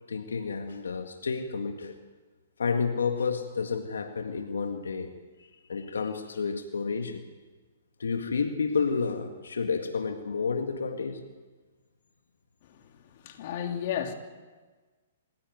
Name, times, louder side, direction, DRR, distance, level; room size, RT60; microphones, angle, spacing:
voice 1, 0.1-1.9 2.6-5.1 5.4-7.2 8.0-11.2, left 5 dB, 85° left, 1.9 m, -30 dB
voice 2, 13.2-14.1, left 9 dB, 50° left, 3.1 m, -32 dB
26.5 x 16.0 x 9.4 m
hypercardioid pair, 135°, 0 cm